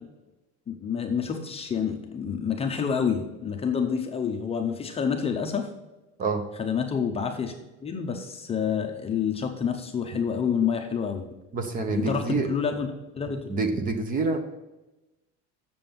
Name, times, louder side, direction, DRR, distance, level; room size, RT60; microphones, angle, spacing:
voice 1, 0.7-5.7 6.6-7.5 7.8-11.3 11.9-12.9 13.1-13.5, left 7 dB, 20° left, 3 dB, 0.6 m, -28 dB
voice 2, 11.5-12.5 13.5-14.4, right 3 dB, 25° right, 7 dB, 0.7 m, -27 dB
7.4 x 6.8 x 5.2 m, 1.0 s
cardioid pair, 180°, 31 cm